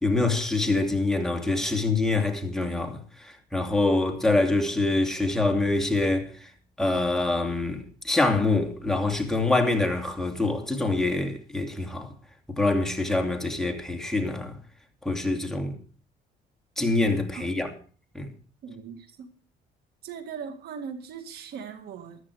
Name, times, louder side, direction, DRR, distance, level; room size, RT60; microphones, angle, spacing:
voice 1, 0.0-6.5 6.8-12.1 12.6-14.6 15.0-15.7 16.8-17.7 18.1-18.3, left 2 dB, 5° left, 2.8 m, -25 dB
voice 2, 18.6-19.3 20.0-22.2, right 6 dB, 70° right, 2.0 m, -39 dB
14.5 x 13.0 x 4.8 m
cardioid pair, 110°, 17 cm